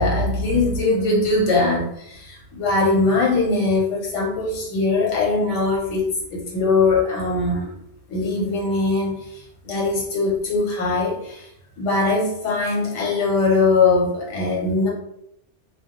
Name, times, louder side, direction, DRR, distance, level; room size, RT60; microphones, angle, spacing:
voice 1, 0.0-7.7 8.1-11.5 11.8-14.9, left 3 dB, 75° left, -3 dB, 1.1 m, -21 dB
2.3 x 2.1 x 2.8 m, 0.76 s
omnidirectional pair, 1.3 m